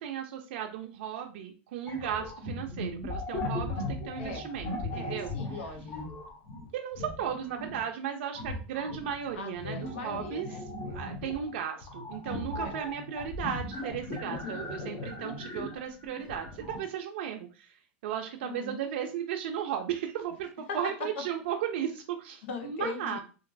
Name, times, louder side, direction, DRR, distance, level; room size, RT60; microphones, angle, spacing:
voice 1, 0.0-5.3 6.7-10.5 10.9-17.7 18.0-23.2, right 9 dB, 75° right, 3 dB, 0.4 m, -35 dB
sound 1, 1.9-7.9 8.3-16.8, left 2 dB, 40° left, 0.9 m, -38 dB
voice 2, 4.9-6.2 9.4-11.1 12.6-12.8 14.2-14.6 18.4-18.8 20.7-20.8 22.4-23.2, left 4 dB, 85° left, 4 dB, 0.8 m, -40 dB
2.9 x 2.5 x 2.5 m, 0.35 s
supercardioid pair, 125°, 6 cm